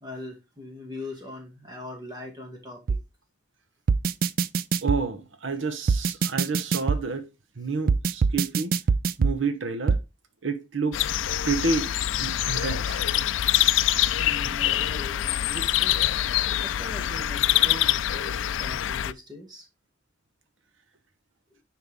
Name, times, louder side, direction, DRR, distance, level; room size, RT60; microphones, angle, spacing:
voice 1, 0.0-3.0 14.2-16.0 16.6-19.7, left 2 dB, 20° right, 2.0 m, -40 dB
sound 1, 2.9-3.0 3.9-5.0 5.9-7.0 7.9-9.4 9.9-10.0, right 5 dB, 50° right, 0.3 m, -23 dB
voice 2, 4.8-7.3 7.6-8.7 9.2-10.0 10.4-11.0 11.4-13.1, right 4 dB, 80° right, 0.9 m, -29 dB
sound 2, 10.9-19.1, left 12 dB, 80° left, 0.4 m, -25 dB
9.4 x 4.6 x 3.5 m
head